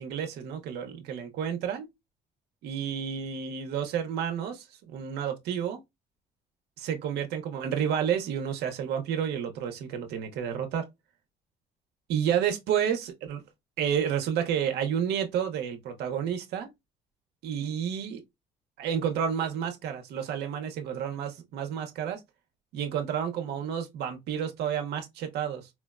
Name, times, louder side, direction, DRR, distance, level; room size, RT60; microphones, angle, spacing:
voice 1, 0.0-1.9 2.6-5.8 6.8-10.9 12.1-13.4 13.8-16.7 17.4-18.2 18.8-22.2 22.7-25.7, right 8 dB, 75° right, 0.7 m, -30 dB
4.4 x 2.1 x 2.3 m
cardioid pair, 110°, 17 cm